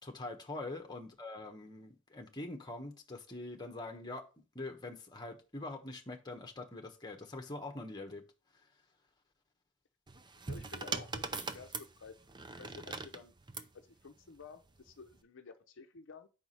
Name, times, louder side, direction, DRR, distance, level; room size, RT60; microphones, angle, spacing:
voice 1, 0.0-4.2 4.5-8.2, left 2 dB, 20° left, 1.1 m, -44 dB
sound 1, 10.1-13.7 14.8-15.2, right 3 dB, 20° right, 0.6 m, -41 dB
voice 2, 10.5-12.2 12.6-13.3 13.7-16.3, left 4 dB, 65° left, 0.7 m, -52 dB
5.0 x 4.7 x 5.5 m
head